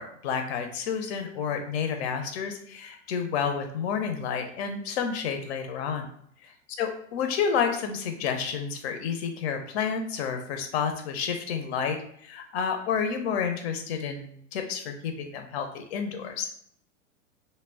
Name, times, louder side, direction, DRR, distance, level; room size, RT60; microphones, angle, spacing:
voice 1, 0.0-6.1 6.4-6.5 6.8-16.5, left 6 dB, 55° left, 5 dB, 0.6 m, -30 dB
2.0 x 2.0 x 3.4 m, 0.66 s
hypercardioid pair, 95°, 37 cm